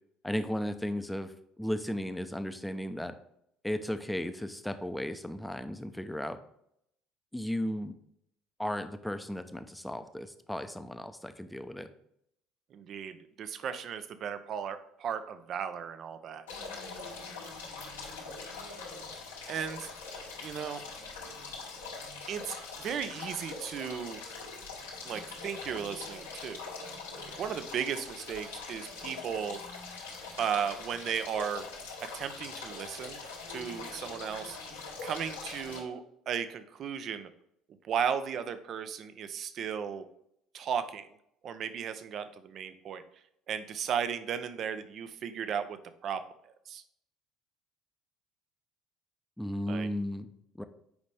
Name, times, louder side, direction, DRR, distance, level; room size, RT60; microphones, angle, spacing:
voice 1, 0.2-3.1 3.6-6.4 7.3-8.0 8.6-11.9 49.4-50.3 50.6-50.7, equal, 5° left, 9 dB, 0.8 m, -35 dB
voice 2, 12.7-16.4 19.5-19.9 20.4-20.8 22.3-24.2 25.0-26.7 27.4-29.6 30.4-31.6 32.0-33.2 33.5-34.6 35.0-37.3 37.8-40.0 40.5-41.1 41.4-43.0 43.5-45.8 46.0-46.8 49.7-49.9, right 7 dB, 50° right, 11 dB, 0.7 m, -35 dB
sound 1, 16.5-35.8, left 4 dB, 85° left, 1.9 m, -43 dB
8.0 x 5.2 x 3.4 m, 0.74 s
hypercardioid pair, 65°, 0 cm